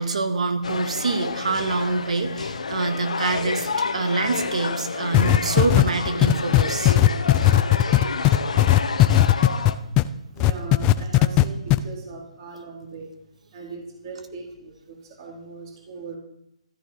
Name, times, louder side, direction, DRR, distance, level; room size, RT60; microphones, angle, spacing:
voice 1, 0.0-7.0, right 3 dB, 75° right, 8 dB, 2.1 m, -26 dB
sound 1, 0.6-9.7, left 4 dB, 90° left, 1.6 m, -29 dB
sound 2, 5.1-10.1 10.4-11.4 11.7-11.8, left 15 dB, 20° left, 0.5 m, -16 dB
voice 2, 9.6-10.1 10.3-13.1 13.5-16.2, right 3 dB, 40° right, -1 dB, 4.5 m, -39 dB
15.0 x 13.5 x 4.9 m, 0.80 s
hypercardioid pair, 155°, 4 cm